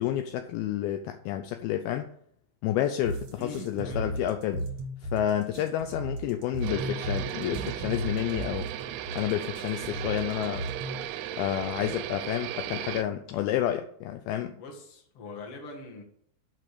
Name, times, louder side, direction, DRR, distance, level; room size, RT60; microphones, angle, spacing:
voice 1, 0.0-2.1 2.6-4.6 5.0-8.7 9.2-10.7 11.4-14.6, left 11 dB, 85° left, 2.2 m, -30 dB
sound 1, 3.0-11.1, right 1 dB, 65° right, 1.6 m, -35 dB
voice 2, 3.4-4.1 14.6-16.0, left 2 dB, 45° left, 2.0 m, -42 dB
sound 2, 6.6-13.0, right 12 dB, 90° right, 2.9 m, -36 dB
8.2 x 5.8 x 6.8 m
omnidirectional pair, 5.0 m